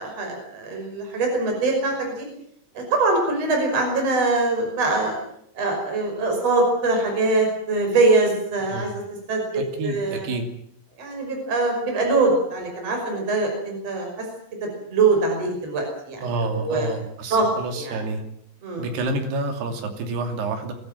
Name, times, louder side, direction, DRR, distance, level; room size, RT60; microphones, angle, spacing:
voice 1, 0.0-2.3 2.7-5.2 5.5-9.0 9.3-10.3 11.0-14.2 14.6-16.2 16.5-16.9 17.3-17.5 17.7-18.0 18.6-18.8, right 3 dB, 35° right, 2 dB, 6.6 m, -23 dB
voice 2, 9.5-10.4 16.2-18.2 18.8-20.7, right 2 dB, 70° right, 5 dB, 4.8 m, -28 dB
23.5 x 15.5 x 9.2 m, 0.70 s
omnidirectional pair, 5.0 m